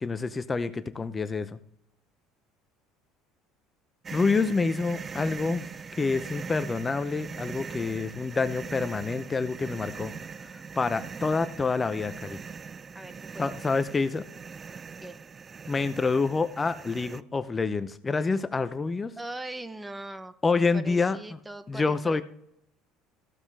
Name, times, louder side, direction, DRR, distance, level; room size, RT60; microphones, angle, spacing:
voice 1, 0.0-1.5 4.1-5.7 6.0-10.1 10.4-12.4 13.4-14.2 15.7-19.1 20.4-21.2 21.7-22.2, left 4 dB, 25° left, 12 dB, 0.6 m, -27 dB
sound 1, 4.0-17.2, right 5 dB, 30° right, 0.3 m, -41 dB
voice 2, 12.9-13.5 15.0-15.2 19.2-20.3 20.7-22.2, right 2 dB, 10° right, 12 dB, 0.8 m, -40 dB
15.0 x 7.1 x 3.4 m, 0.77 s
supercardioid pair, 85°, 0 cm